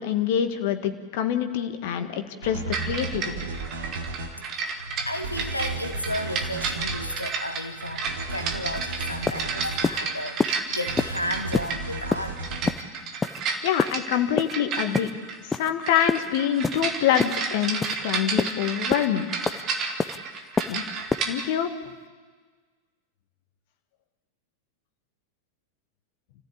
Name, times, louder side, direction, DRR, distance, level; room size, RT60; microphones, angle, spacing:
voice 1, 0.0-3.5 13.6-15.1 15.5-19.3 20.7-20.8 21.3-21.7, left 10 dB, 50° left, 8 dB, 1.8 m, -26 dB
sound 1, 2.4-4.3 5.2-7.1 8.1-9.9 10.9-12.8, right 3 dB, 65° right, 2.7 m, -35 dB
sound 2, 2.7-21.5, right 5 dB, 35° right, 2.4 m, -32 dB
voice 2, 4.8-12.4, left 1 dB, 85° left, 7 dB, 1.1 m, -33 dB
sound 3, 8.8-8.9 9.3-9.4 9.8-10.0 10.4-10.5 11.0-11.1 11.5-11.7 12.1-12.3 12.7-12.8 13.2-13.4 13.8-13.9 14.4-14.5 14.9-15.1 15.5-15.7 16.1-16.3 16.6-16.8 17.2-17.4 17.8-18.0 18.4-18.5 18.9-19.1 19.5-19.6 20.0-20.2 20.6-20.7 21.1-21.2, left 4 dB, 15° left, 0.7 m, -26 dB
29.0 x 15.0 x 8.7 m, 1.5 s
figure-of-eight pair, 90°, 0 cm